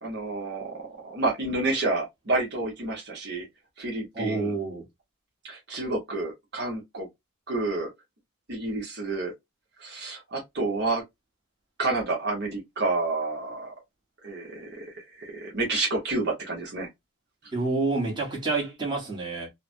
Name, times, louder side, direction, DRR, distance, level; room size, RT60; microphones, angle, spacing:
voice 1, 0.0-3.5 3.8-4.6 5.4-7.1 7.5-7.9 8.5-9.3 9.8-11.0 11.8-13.7 14.2-16.9, right 2 dB, 50° right, 1.0 m, -29 dB
voice 2, 4.1-4.8 17.5-19.5, right 3 dB, 20° right, 1.2 m, -28 dB
3.2 x 2.1 x 2.6 m
head